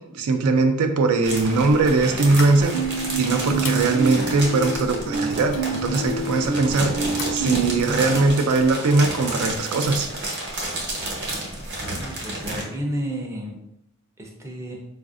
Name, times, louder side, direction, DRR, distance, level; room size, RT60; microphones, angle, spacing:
voice 1, 0.1-10.1, right 3 dB, 75° right, 5 dB, 0.4 m, -21 dB
sound 1, 1.2-12.6, right 1 dB, 50° right, 0.8 m, -31 dB
sound 2, 2.3-7.9, left 4 dB, 60° left, 0.4 m, -38 dB
sound 3, 2.7-7.8, right 3 dB, 80° left, 0.7 m, -28 dB
voice 2, 11.9-13.5 14.2-14.8, equal, 10° right, -1 dB, 0.4 m, -31 dB
4.0 x 2.4 x 2.4 m, 0.83 s
head